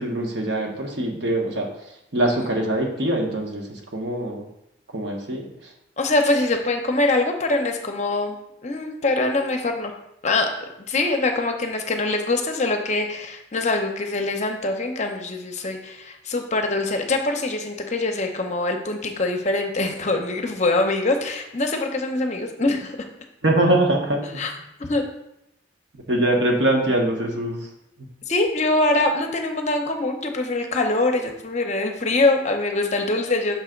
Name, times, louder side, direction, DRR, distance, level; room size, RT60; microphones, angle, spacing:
voice 1, 0.0-1.7 2.1-4.5 4.9-5.7 23.4-24.4 25.9-27.7 28.0-28.1, right 1 dB, 65° right, 1 dB, 1.1 m, -23 dB
voice 2, 6.0-8.4 8.6-9.9 10.2-10.5 10.9-23.0 24.4-24.5 24.8-25.0 28.3-33.6, left 2 dB, 35° left, 4 dB, 0.7 m, -23 dB
6.2 x 3.4 x 5.1 m, 0.82 s
head